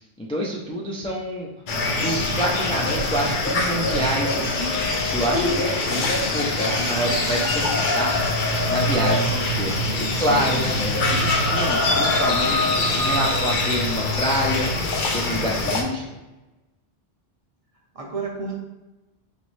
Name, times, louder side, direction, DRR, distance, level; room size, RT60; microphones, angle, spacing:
voice 1, 0.2-1.5 2.0-8.3 8.7-12.7 12.9-14.7 15.1-16.0, equal, 10° left, -3 dB, 0.3 m, -27 dB
sound 1, 1.7-15.8, left 2 dB, 55° left, 0.7 m, -23 dB
voice 2, 10.3-10.7 11.7-11.9 12.5-12.7 15.6-15.9 17.9-18.6, right 4 dB, 40° right, -1 dB, 0.7 m, -33 dB
4.0 x 3.1 x 3.2 m, 1.1 s
omnidirectional pair, 1.1 m